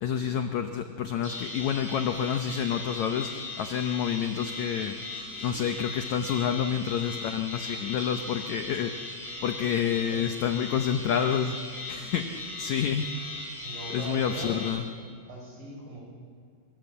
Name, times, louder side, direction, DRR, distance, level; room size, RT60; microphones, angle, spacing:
voice 1, 0.0-5.0 5.4-9.2 9.4-11.6 11.9-13.1 13.9-14.8, left 8 dB, 85° left, 7 dB, 1.6 m, -29 dB
sound 1, 1.2-14.7, left 2 dB, 20° left, 5.8 m, -38 dB
voice 2, 13.6-14.6 15.3-16.0, right 2 dB, 65° right, -1 dB, 7.8 m, -40 dB
27.5 x 16.5 x 8.2 m, 2.1 s
omnidirectional pair, 4.5 m